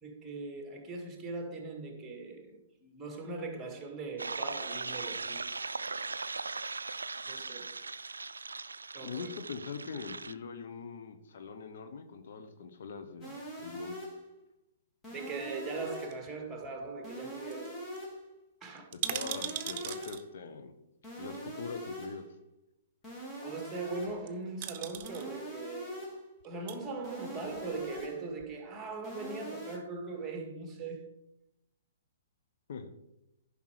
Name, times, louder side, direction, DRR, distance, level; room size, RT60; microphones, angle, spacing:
voice 1, 0.0-5.6 7.3-7.8 8.9-9.3 15.1-17.9 18.6-18.9 23.4-26.2 26.4-31.1, right 3 dB, 15° right, 1.8 m, -40 dB
sound 1, 4.2-10.3, right 4 dB, 90° right, 0.3 m, -39 dB
voice 2, 9.0-13.3 13.6-14.0 18.9-20.7 21.2-22.3 32.7-32.9, left 5 dB, 65° left, 1.1 m, -42 dB
sound 2, 13.2-14.3 15.0-16.3 17.0-18.3 19.0-20.3 21.0-22.3 23.0-24.3 25.0-26.3 27.0-28.3 29.0-29.8, equal, 15° left, 2.7 m, -43 dB
sound 3, 16.1-16.9 17.2-17.3 17.5-17.7 18.0-18.1 18.8-20.2 21.4-21.5 24.1-24.3 24.6-25.3 26.4-26.8 27.4-28.1 28.4-28.5, right 10 dB, 40° right, 0.7 m, -39 dB
10.5 x 5.5 x 4.9 m
hypercardioid pair, 130°, 0 cm